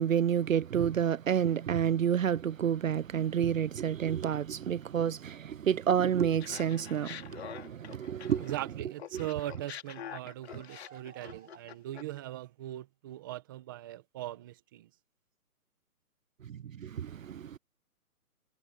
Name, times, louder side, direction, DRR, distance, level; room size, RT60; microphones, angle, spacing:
voice 1, 0.0-8.5 9.1-9.2 10.9-11.0 16.4-17.6, right 9 dB, 60° right, 0.7 m, -29 dB
Laughter, 6.4-8.7 9.0-12.2, left 9 dB, 45° left, 3.1 m, -46 dB
voice 2, 8.4-14.9, right 14 dB, 15° right, 1.0 m, -40 dB
hypercardioid pair, 165°, 45 cm